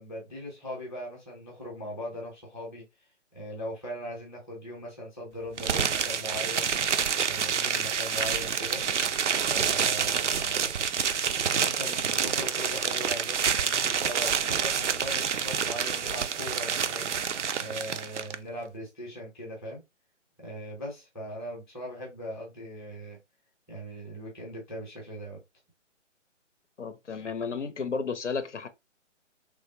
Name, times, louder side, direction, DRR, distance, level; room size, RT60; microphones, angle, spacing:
voice 1, 0.0-2.8 3.3-6.7 7.3-8.8 9.5-10.8 11.4-17.1 17.6-19.8 20.4-23.2 23.7-25.4, equal, ahead, 0.6 m, -39 dB
sound 1, 5.6-18.3, right 7 dB, 70° right, 0.5 m, -28 dB
voice 2, 26.8-28.7, left 5 dB, 70° left, 0.6 m, -33 dB
3.2 x 2.5 x 2.7 m
figure-of-eight pair, 140°, 37 cm